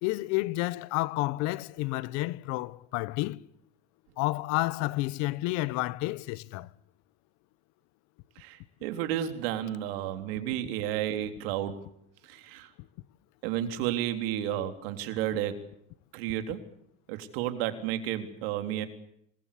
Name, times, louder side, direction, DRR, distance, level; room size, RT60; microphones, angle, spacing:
voice 1, 0.0-3.4 4.2-6.7, left 20 dB, 65° left, 1.1 m, -30 dB
voice 2, 8.4-11.8 12.2-12.7 13.4-15.6 16.1-16.6 17.1-18.9, right 11 dB, 80° right, 3.6 m, -32 dB
26.5 x 21.0 x 8.5 m
supercardioid pair, 110°, 29 cm